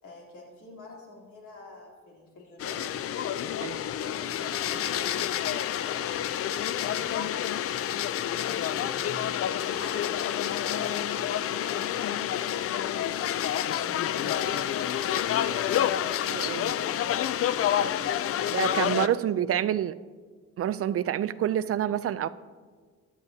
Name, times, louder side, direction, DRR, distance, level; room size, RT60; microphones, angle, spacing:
voice 1, 0.0-2.8 3.5-5.9 6.7-9.2 9.5-13.0 13.7-15.5 18.0-19.2 19.5-19.6 21.2-21.4, left 2 dB, 75° left, -3 dB, 3.3 m, -47 dB
sound 1, 2.6-19.1, left 10 dB, 50° left, 0.4 m, -28 dB
voice 2, 16.2-16.7 18.5-19.9 20.6-22.3, right 11 dB, 50° right, 16 dB, 0.4 m, -27 dB
16.0 x 11.0 x 2.8 m, 1.5 s
cardioid pair, 90°, 30 cm